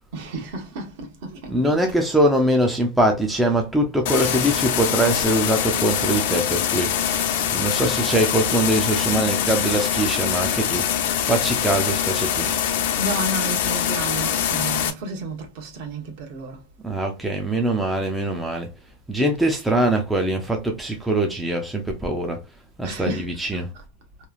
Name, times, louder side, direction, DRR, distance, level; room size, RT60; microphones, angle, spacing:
voice 1, 0.1-1.9 4.1-4.6 7.0-7.1 13.0-16.7 21.0-21.1 22.8-23.8, right 2 dB, 55° right, 1.0 m, -32 dB
voice 2, 1.5-7.1 7.4-10.9 11.3-12.5 16.8-18.7 19.1-22.4 22.8-23.7, right 1 dB, 5° right, 0.4 m, -22 dB
sound 1, 4.1-14.9, left 9 dB, 60° left, 0.5 m, -23 dB
3.0 x 2.3 x 2.3 m
supercardioid pair, 160°, 0 cm